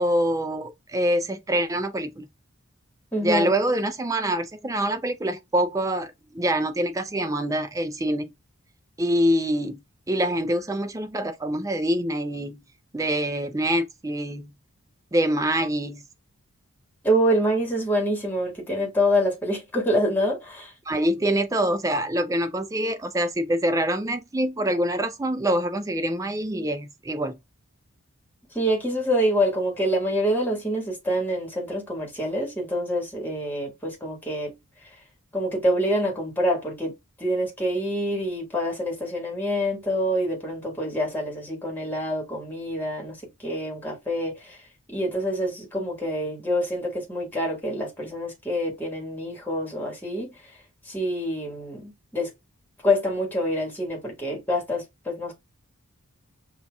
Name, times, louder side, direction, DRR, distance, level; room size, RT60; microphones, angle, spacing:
voice 1, 0.0-2.3 3.2-8.3 9.0-9.8 10.1-12.6 12.9-14.5 15.1-16.0 20.9-27.4, right 1 dB, 15° right, 0.4 m, -25 dB
voice 2, 3.1-3.5 17.0-20.7 28.5-34.6 35.3-44.6 44.9-50.5 50.8-52.3 52.8-55.3, equal, 10° left, 1.5 m, -26 dB
5.6 x 2.4 x 2.2 m
head